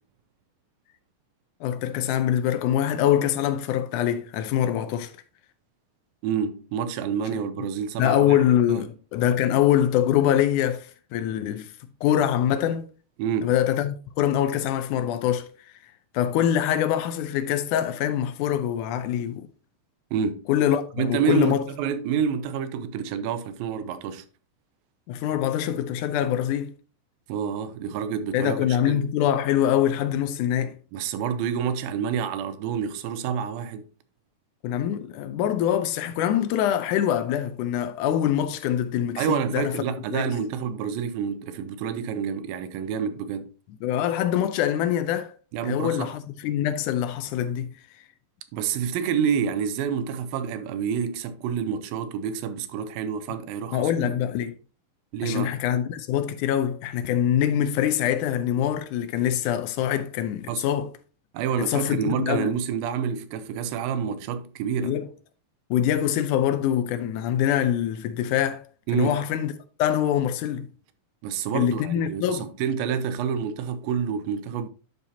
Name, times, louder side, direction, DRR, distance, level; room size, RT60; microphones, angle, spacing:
voice 1, 1.6-5.1 8.0-11.7 12.0-12.9 13.4-15.5 16.1-19.5 20.5-21.7 25.1-26.7 28.3-30.8 34.6-39.7 40.1-40.3 43.8-45.3 45.6-47.7 53.7-54.5 55.2-60.9 61.7-62.5 64.8-65.1 65.7-68.6 68.9-69.5 69.8-70.7 71.5-72.5, left 10 dB, 75° left, 1.9 m, -24 dB
voice 2, 6.2-8.4 8.7-8.8 13.2-13.5 20.1-20.5 20.9-24.3 27.3-29.0 30.9-33.8 39.2-43.5 45.5-46.1 48.5-54.1 55.1-55.5 60.5-60.6 61.3-65.0 68.9-69.2 71.2-74.7, right 7 dB, 90° right, 2.5 m, -28 dB
12.0 x 4.8 x 2.8 m
omnidirectional pair, 4.1 m